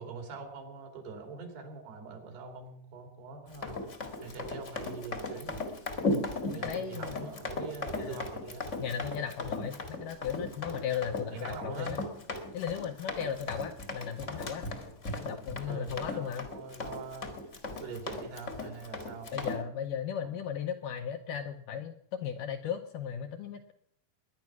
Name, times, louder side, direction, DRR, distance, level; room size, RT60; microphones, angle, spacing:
voice 1, 0.0-3.8 4.2-5.6 6.5-8.7 11.3-11.9 15.7-17.3 17.8-19.6 20.2-20.4, right 4 dB, 75° right, 5 dB, 4.8 m, -43 dB
Run, 3.5-19.6, left 2 dB, 40° left, 1.0 m, -37 dB
voice 2, 6.5-7.3 8.0-8.2 8.8-12.0 12.5-14.7 15.2-16.5 19.3-23.7, left 8 dB, 80° left, 6 dB, 2.0 m, -36 dB
20.5 x 10.5 x 6.0 m, 0.69 s
omnidirectional pair, 4.6 m